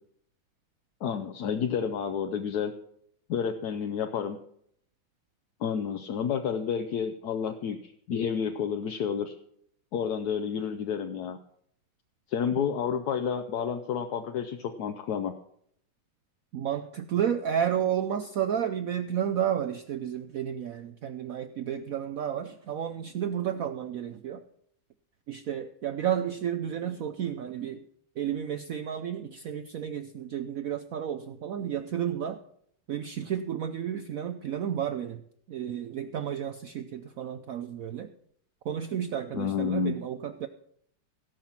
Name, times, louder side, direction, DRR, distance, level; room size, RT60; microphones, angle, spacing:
voice 1, 1.0-2.7 3.3-4.4 5.6-9.3 9.9-11.4 12.3-15.3 39.3-40.0, left 7 dB, 60° left, 6 dB, 1.1 m, -30 dB
voice 2, 16.5-24.4 25.3-27.8 28.2-32.4 32.9-35.2 35.5-38.1 38.6-40.5, right 9 dB, 85° right, 10 dB, 0.7 m, -32 dB
17.0 x 5.9 x 7.2 m, 0.68 s
omnidirectional pair, 2.2 m